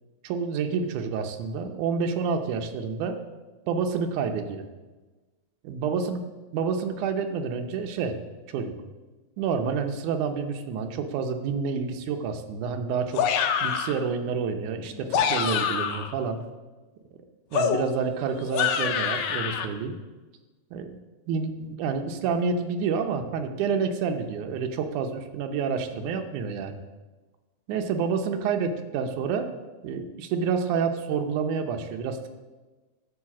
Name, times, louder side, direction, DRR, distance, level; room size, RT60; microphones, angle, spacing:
voice 1, 0.2-3.2 3.7-4.6 5.6-6.2 6.5-8.2 8.5-8.8 9.4-13.2 13.6-16.4 17.5-19.9 20.7-21.0 21.3-26.8 27.7-29.5 29.8-32.3, right 5 dB, 85° right, 6 dB, 2.3 m, -28 dB
sound 1, 13.1-14.0 14.9-16.1 17.5-19.7, left 7 dB, 75° left, 1.9 m, -26 dB
11.5 x 4.9 x 7.2 m, 1.2 s
omnidirectional pair, 3.5 m